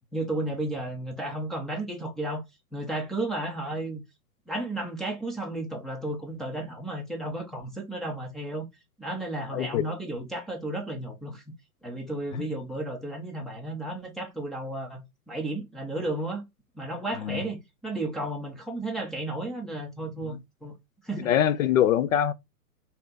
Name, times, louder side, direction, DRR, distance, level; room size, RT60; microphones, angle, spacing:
voice 1, 0.1-2.4 2.7-4.0 4.5-8.7 9.0-11.4 11.8-16.4 16.7-20.7 21.0-21.3, right 1 dB, ahead, 0.6 m, -33 dB
voice 2, 9.5-9.9 12.3-12.4 17.1-17.4 20.2-20.4 21.2-22.3, left 10 dB, 60° left, 0.7 m, -24 dB
3.3 x 2.8 x 3.9 m
hypercardioid pair, 115°, 46 cm